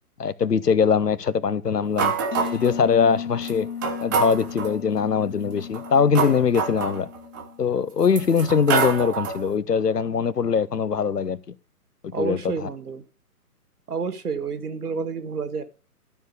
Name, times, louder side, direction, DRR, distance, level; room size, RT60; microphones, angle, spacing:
voice 1, 0.2-2.2 2.5-3.7 4.0-7.1 7.6-11.4 12.0-12.7, left 6 dB, 85° left, 1.0 m, -22 dB
sound 1, 2.0-2.8 3.4-3.5 3.8-4.8 5.6-7.4 8.0-9.5, right 6 dB, 15° right, 0.7 m, -26 dB
sound 2, 2.3-7.9, left 8 dB, 55° left, 1.0 m, -35 dB
voice 2, 12.1-13.0 13.9-15.6, right 5 dB, 70° right, 1.8 m, -29 dB
12.0 x 4.7 x 6.6 m
figure-of-eight pair, 135°, 46 cm